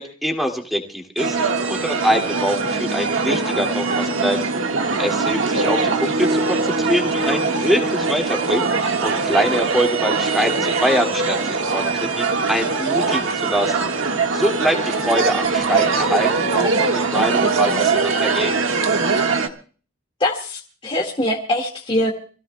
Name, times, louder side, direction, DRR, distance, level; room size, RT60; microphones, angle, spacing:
voice 1, 0.0-4.4 5.0-13.9 14.3-18.6, equal, ahead, 3 dB, 2.2 m, -24 dB
sound 1, 1.2-19.5, right 4 dB, 70° right, 1.5 m, -21 dB
voice 2, 20.2-22.1, left 1 dB, 25° left, 0 dB, 1.8 m, -23 dB
28.0 x 16.5 x 2.2 m, 0.40 s
head